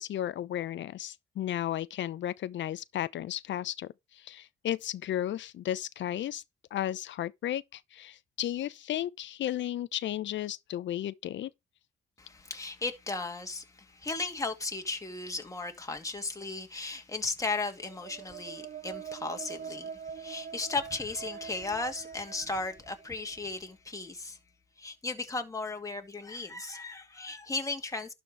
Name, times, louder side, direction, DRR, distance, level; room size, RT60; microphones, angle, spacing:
voice 1, 0.0-6.4 6.7-11.5, left 12 dB, 70° left, 0.8 m, -34 dB
voice 2, 12.2-24.4 24.8-28.1, left 3 dB, 15° left, 2.3 m, -36 dB
sound 1, 17.6-23.4, right 7 dB, 50° right, 0.8 m, -44 dB
12.0 x 4.7 x 4.7 m
cardioid pair, 90°, 20 cm